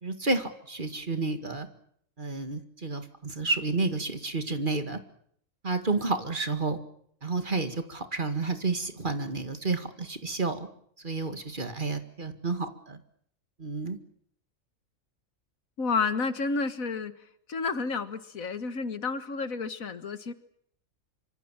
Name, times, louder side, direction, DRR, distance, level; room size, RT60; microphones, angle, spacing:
voice 1, 0.0-1.7 2.2-5.0 5.6-6.8 7.2-10.7 11.0-13.0 13.6-14.0, right 3 dB, 35° right, 8 dB, 2.1 m, -30 dB
voice 2, 15.8-17.1 17.5-20.3, left 4 dB, 85° left, 11 dB, 2.0 m, -30 dB
26.0 x 25.0 x 7.4 m, 0.67 s
omnidirectional pair, 1.4 m